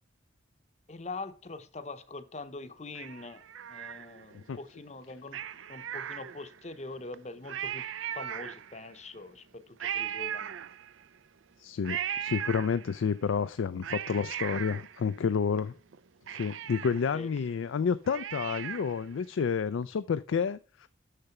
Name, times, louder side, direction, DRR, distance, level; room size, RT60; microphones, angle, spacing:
voice 1, 0.9-3.4 3.7-5.4 5.7-7.9 8.1-10.5 17.1-17.3, left 3 dB, 35° left, 0.7 m, -43 dB
Cat, 3.0-4.4 5.3-6.7 7.1-7.2 7.4-9.0 9.8-11.2 11.8-13.1 13.6-15.6 15.9-16.0 16.3-19.1 19.4-19.5, right 9 dB, 85° right, 0.5 m, -38 dB
voice 2, 11.6-15.7 16.3-20.9, left 6 dB, 85° left, 0.4 m, -30 dB
6.7 x 6.6 x 5.8 m
head